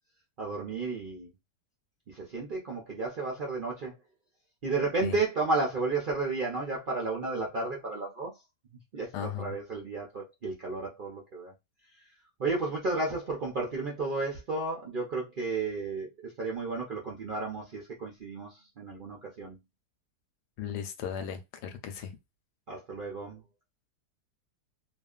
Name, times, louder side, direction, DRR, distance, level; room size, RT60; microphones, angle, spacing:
voice 1, 0.4-1.3 2.1-3.9 4.6-8.3 8.9-11.5 12.4-19.6 22.7-23.4, right 3 dB, 65° right, 0.5 m, -33 dB
voice 2, 9.1-9.6 20.6-22.1, left 8 dB, 85° left, 1.2 m, -36 dB
2.7 x 2.4 x 2.3 m
omnidirectional pair, 1.7 m